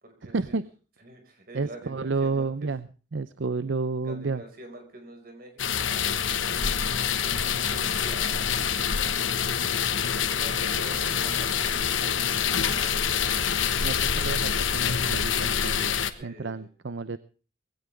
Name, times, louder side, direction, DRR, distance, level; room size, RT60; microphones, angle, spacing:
voice 1, 0.0-0.6 1.0-2.5 4.0-8.6 10.1-13.0 16.2-16.7, right 1 dB, 50° right, 4 dB, 5.3 m, -47 dB
voice 2, 1.5-4.4 13.8-15.9 16.2-17.2, right 4 dB, 70° right, 14 dB, 0.7 m, -31 dB
sound 1, 5.6-16.1, left 7 dB, 85° left, 1.3 m, -26 dB
20.0 x 17.0 x 3.5 m, 0.37 s
head